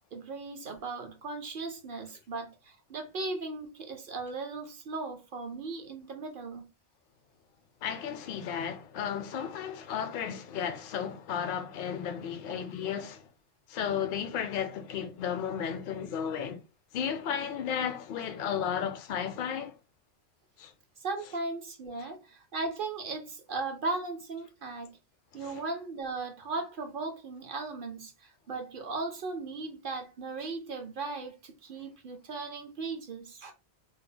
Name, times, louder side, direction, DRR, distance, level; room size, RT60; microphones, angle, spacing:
voice 1, 0.1-6.7 21.0-25.0 25.3-33.5, right 3 dB, 60° right, 0.8 m, -37 dB
voice 2, 7.8-13.3 13.7-16.6 16.9-19.7 20.6-20.7 22.0-22.1 25.3-25.6, left 8 dB, 60° left, 0.7 m, -34 dB
2.8 x 2.1 x 3.7 m
omnidirectional pair, 1.1 m